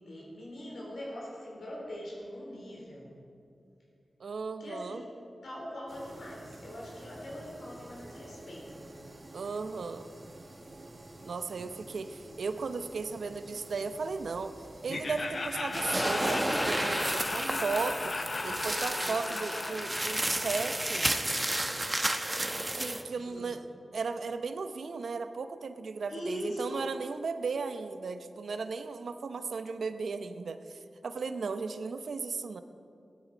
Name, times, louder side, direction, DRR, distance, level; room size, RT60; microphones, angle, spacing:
voice 1, 0.0-3.2 4.6-5.1 5.4-8.9 17.2-17.6 18.9-19.8 23.1-23.5 26.1-26.9, equal, 85° left, -3 dB, 4.1 m, -42 dB
voice 2, 4.2-5.0 9.3-10.1 11.2-14.6 14.8-21.1 22.7-23.7 23.9-32.6, right 4 dB, 80° right, 9 dB, 0.7 m, -36 dB
sound 1, 5.9-18.8, right 1 dB, 40° right, 1.8 m, -50 dB
Laughter, 14.9-21.8, left 3 dB, 55° left, 0.9 m, -37 dB
sound 2, 15.7-23.0, right 1 dB, 25° right, 1.1 m, -32 dB
16.0 x 12.5 x 5.0 m, 2.5 s
cardioid pair, 45°, 0 cm